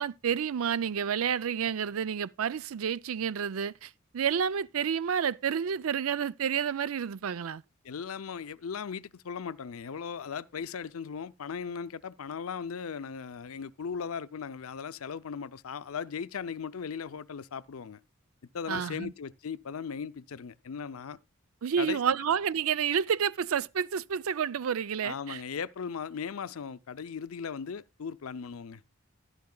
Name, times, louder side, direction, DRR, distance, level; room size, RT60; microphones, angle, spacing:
voice 1, 0.0-7.6 18.7-19.1 21.6-25.4, right 7 dB, 80° right, 0.4 m, -30 dB
voice 2, 7.8-18.0 18.5-21.2 21.8-22.0 25.0-28.8, left 6 dB, 80° left, 0.5 m, -38 dB
13.0 x 11.5 x 2.3 m
head